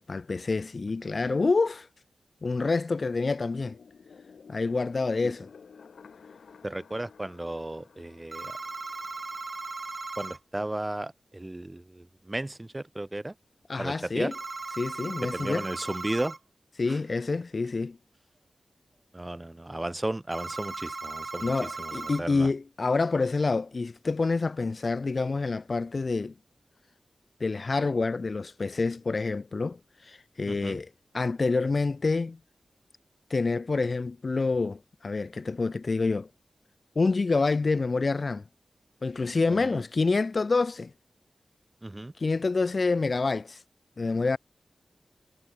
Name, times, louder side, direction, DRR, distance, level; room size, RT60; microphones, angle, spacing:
voice 1, 0.0-1.9 2.4-3.8 4.5-5.5 13.7-14.3 14.8-15.7 16.8-18.0 21.4-26.3 27.4-30.9 31.1-32.4 33.3-36.3 36.9-38.4 39.0-40.9 42.2-43.6 44.0-44.4, left 3 dB, 50° left, 1.2 m, -27 dB
sound 1, 3.4-9.9, left 6 dB, 85° left, 1.4 m, -53 dB
voice 2, 6.6-8.6 10.2-13.3 13.8-14.3 15.3-16.4 16.9-17.0 19.1-22.5 30.5-30.8 39.5-39.8 41.8-42.1, right 1 dB, 20° right, 1.4 m, -35 dB
sound 2, 8.3-10.4 14.3-16.4 20.3-22.2, right 3 dB, 45° right, 1.8 m, -37 dB
cardioid pair, 60°, 0 cm